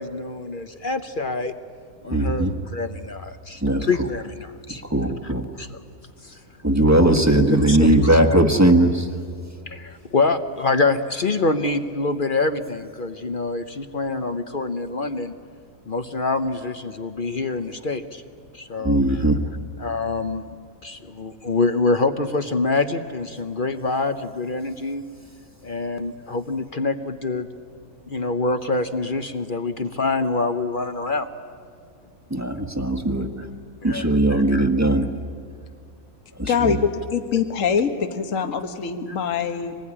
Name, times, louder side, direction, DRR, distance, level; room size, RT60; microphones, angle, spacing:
voice 1, 0.0-1.5 2.0-4.8 5.6-5.7 6.2-6.4 7.3-8.2 9.7-15.3 15.9-18.2 18.5-19.0 19.8-20.4 20.8-25.0 25.6-27.5 28.1-31.3 33.8-34.1 34.5-34.7, left 3 dB, 40° left, 9 dB, 0.9 m, -25 dB
voice 2, 2.1-2.5 3.6-4.1 4.7-5.5 6.6-9.1 18.8-19.4 32.3-33.5 33.8-35.1 36.4-36.8, right 1 dB, 10° right, 6 dB, 1.4 m, -19 dB
voice 3, 36.5-39.7, left 6 dB, 60° left, 7 dB, 1.7 m, -23 dB
26.0 x 20.0 x 9.9 m, 2.3 s
omnidirectional pair, 1.6 m